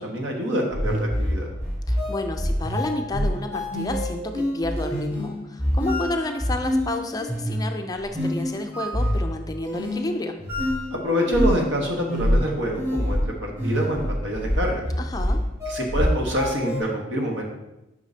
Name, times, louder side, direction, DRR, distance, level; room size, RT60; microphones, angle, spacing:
voice 1, 0.0-1.5 10.9-14.8 15.7-17.4, equal, 70° right, 0 dB, 1.3 m, -26 dB
sound 1, 0.7-16.8, equal, 15° right, 2.6 m, -26 dB
voice 2, 1.9-10.4 15.0-15.4, left 2 dB, 20° left, 5 dB, 0.4 m, -30 dB
8.3 x 5.6 x 2.8 m, 0.96 s
head